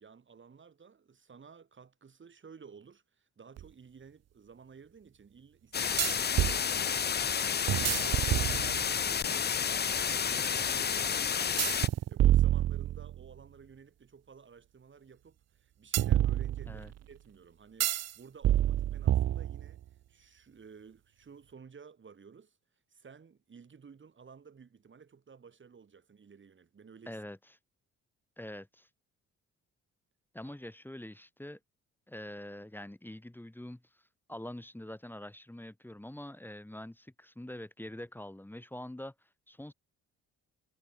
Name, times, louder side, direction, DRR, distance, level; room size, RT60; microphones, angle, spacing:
voice 1, 0.0-19.8 20.1-22.6 22.9-27.2 30.4-30.6, right 6 dB, 40° right, 5.2 m, -54 dB
sound 1, 3.6-3.7 6.0-6.6 7.7-9.0 11.6-13.3 15.9-16.9 17.8-18.1 18.4-19.8, right 12 dB, 60° right, 0.8 m, -28 dB
sound 2, 5.7-11.9, left 7 dB, 35° left, 0.8 m, -30 dB
voice 2, 27.1-27.4 28.4-28.9 30.3-31.6 32.1-34.0 34.3-39.7, left 1 dB, 5° left, 4.4 m, -45 dB
cardioid pair, 90°, 30 cm